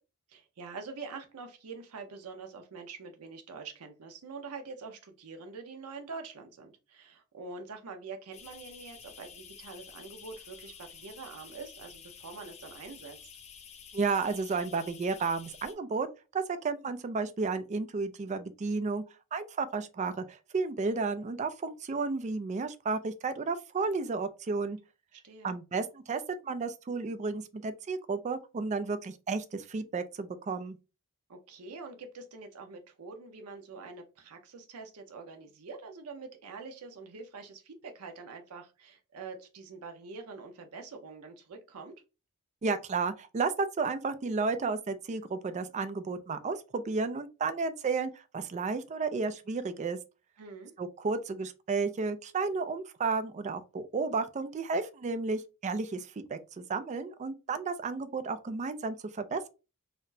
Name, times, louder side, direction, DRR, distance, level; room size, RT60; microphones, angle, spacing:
voice 1, 0.3-13.2 25.1-25.5 31.3-41.9 50.4-50.7, right 4 dB, 85° right, 0.6 m, -45 dB
sound 1, 8.3-15.7, left 7 dB, 30° left, 0.5 m, -51 dB
voice 2, 13.9-16.1 16.3-19.0 19.3-24.8 25.4-30.8 42.6-50.0 50.8-59.5, right 4 dB, 30° right, 0.3 m, -32 dB
4.1 x 2.0 x 2.6 m
head